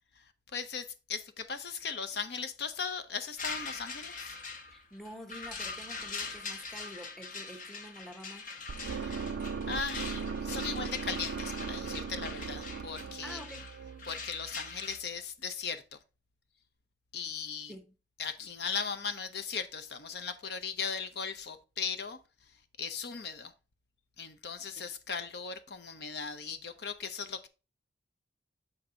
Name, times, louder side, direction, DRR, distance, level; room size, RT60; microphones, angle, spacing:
voice 1, 0.5-4.4 8.9-9.3 9.7-13.4 14.1-15.8 17.1-17.7 18.2-22.2 22.8-23.5 24.2-27.5, left 6 dB, 60° left, 0.6 m, -38 dB
sound 1, 3.4-15.0, left 4 dB, 45° left, 1.0 m, -42 dB
voice 2, 4.7-8.5 13.2-13.7 17.7-17.9, equal, ahead, 0.8 m, -47 dB
sound 2, 8.7-14.7, right 5 dB, 85° right, 0.4 m, -38 dB
7.0 x 5.2 x 3.8 m
head